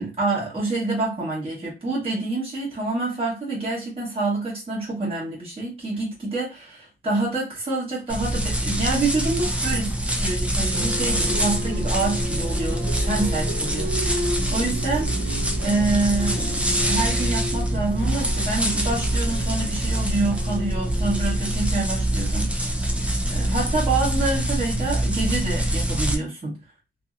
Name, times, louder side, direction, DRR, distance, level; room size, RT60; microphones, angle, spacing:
voice 1, 0.0-9.9 10.2-15.1 15.6-22.5 23.3-26.6, right 2 dB, 25° right, 1.1 m, -27 dB
sound 1, 8.1-26.1, right 1 dB, 5° right, 0.4 m, -24 dB
sound 2, 10.7-21.9, equal, 70° right, 1.1 m, -35 dB
2.7 x 2.6 x 2.5 m
wide cardioid pair, 160°, 21 cm